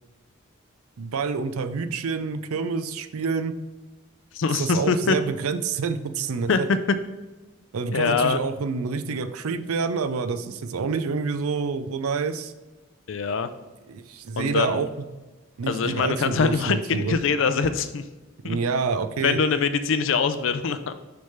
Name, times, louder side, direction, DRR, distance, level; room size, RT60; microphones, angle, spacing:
voice 1, 1.0-3.5 4.5-6.5 7.7-12.5 13.9-15.1 15.6-17.2 18.4-19.4, right 5 dB, 85° right, 10 dB, 0.5 m, -27 dB
voice 2, 4.3-5.2 6.5-6.6 7.9-8.4 13.1-13.5 14.4-14.8 15.7-18.0 18.4-18.6 19.2-20.9, left 5 dB, 65° left, 11 dB, 0.4 m, -23 dB
6.4 x 3.4 x 5.5 m, 1.2 s
head